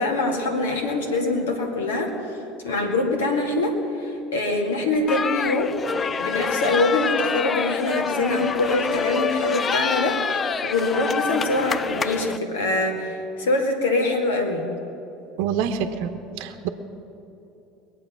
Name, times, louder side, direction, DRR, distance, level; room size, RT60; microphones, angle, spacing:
voice 1, 0.0-2.4 2.6-5.7 6.2-14.6, left 2 dB, 80° left, 1 dB, 2.3 m, -24 dB
sound 1, 5.1-12.4, left 5 dB, 30° left, 0.4 m, -27 dB
voice 2, 15.4-16.1 16.4-16.7, right 8 dB, 65° right, 7 dB, 0.9 m, -26 dB
22.5 x 8.4 x 6.0 m, 2.9 s
hypercardioid pair, 75°, 0 cm